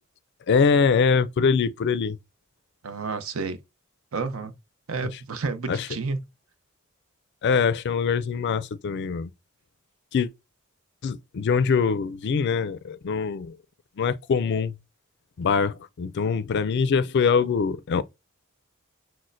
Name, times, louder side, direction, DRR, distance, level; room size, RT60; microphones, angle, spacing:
voice 1, 0.5-2.2 5.7-5.8 7.4-9.3 10.1-10.3 11.0-13.6 14.0-14.7 15.4-18.0, left 5 dB, 55° left, 0.4 m, -23 dB
voice 2, 2.8-3.6 4.1-4.5 4.9-6.2, right 4 dB, 75° right, 0.6 m, -30 dB
6.1 x 2.1 x 2.5 m
head